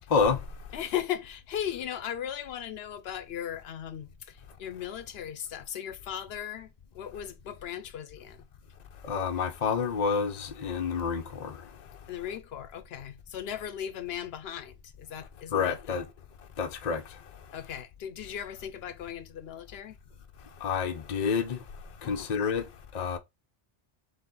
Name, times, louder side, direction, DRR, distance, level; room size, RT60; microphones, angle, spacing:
voice 1, 0.1-0.4 9.0-11.6 15.5-16.1 16.6-17.0 20.6-21.6 22.0-22.7 22.9-23.2, left 5 dB, 45° left, 0.7 m, -28 dB
voice 2, 0.7-8.4 12.1-16.0 17.5-20.0 22.0-22.3, left 10 dB, 80° left, 0.8 m, -37 dB
4.1 x 3.4 x 3.8 m
omnidirectional pair, 1.0 m